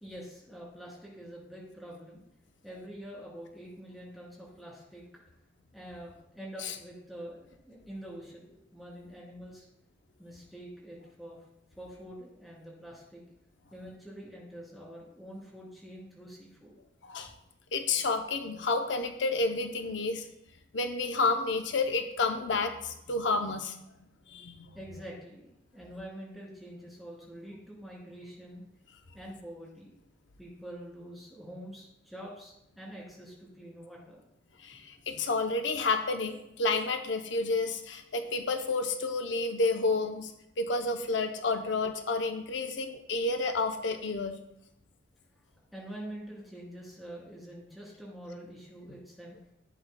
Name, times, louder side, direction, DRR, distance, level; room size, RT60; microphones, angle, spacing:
voice 1, 0.0-2.2 2.6-5.0 5.7-9.7 10.2-11.4 11.8-13.2 13.7-16.8 17.2-17.3 24.7-28.6 29.1-29.9 30.4-34.2 45.7-49.4, equal, ahead, -5 dB, 3.0 m, -46 dB
voice 2, 17.7-20.3 20.7-23.8 24.3-24.7 34.6-40.3 40.6-44.4, left 3 dB, 70° left, 5 dB, 0.7 m, -30 dB
15.0 x 8.0 x 2.2 m, 0.82 s
head